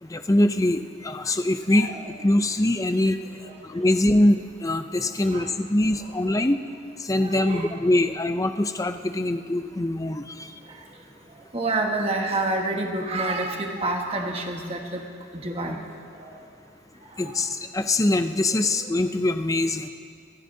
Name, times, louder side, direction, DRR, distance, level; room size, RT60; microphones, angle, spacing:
voice 1, 0.0-1.9 2.2-3.2 3.6-6.6 7.0-10.5 17.2-19.9, left 1 dB, 15° left, 8 dB, 0.5 m, -23 dB
voice 2, 7.2-7.7 10.7-10.8 11.5-15.0 15.3-15.8 16.2-16.4 17.2-17.4, right 2 dB, 30° right, 2 dB, 1.4 m, -28 dB
29.0 x 14.5 x 2.8 m, 2.3 s
head